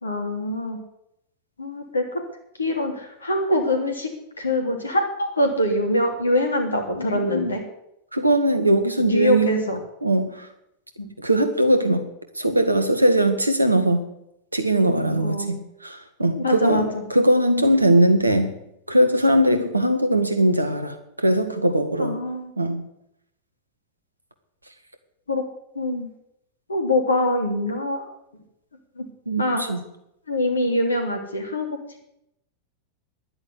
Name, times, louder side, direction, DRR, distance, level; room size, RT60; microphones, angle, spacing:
voice 1, 0.0-0.8 1.6-2.2 2.6-4.1 4.4-7.6 9.0-9.8 11.0-11.1 15.2-15.6 16.4-16.8 22.0-22.5 25.3-25.4 25.7-26.1 26.7-28.0 29.0-29.1 29.4-29.7 30.3-31.7, left 1 dB, 75° left, 4 dB, 3.1 m, -24 dB
voice 2, 7.0-7.6 8.1-9.6 10.0-10.5 11.2-12.0 12.4-14.0 14.5-18.6 18.9-22.2 22.6-22.8 29.3-29.8, right 1 dB, 85° right, 8 dB, 1.9 m, -20 dB
11.5 x 9.9 x 9.8 m, 0.81 s
figure-of-eight pair, 90°, 0 cm